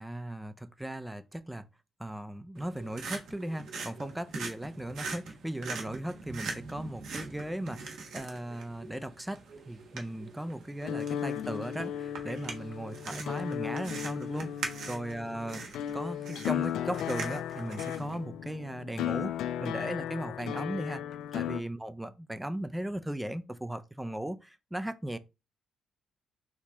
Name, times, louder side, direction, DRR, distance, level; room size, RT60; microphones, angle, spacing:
voice 1, 0.0-1.7 2.0-14.5 14.9-15.6 15.9-19.3 19.6-21.0 21.3-25.2, right 1 dB, 5° right, 0.5 m, -37 dB
sound 1, 2.5-18.1, right 4 dB, 75° right, 1.1 m, -43 dB
sound 2, 10.8-21.6, left 10 dB, 80° left, 0.4 m, -36 dB
4.7 x 2.8 x 3.5 m
cardioid pair, 90°, 0 cm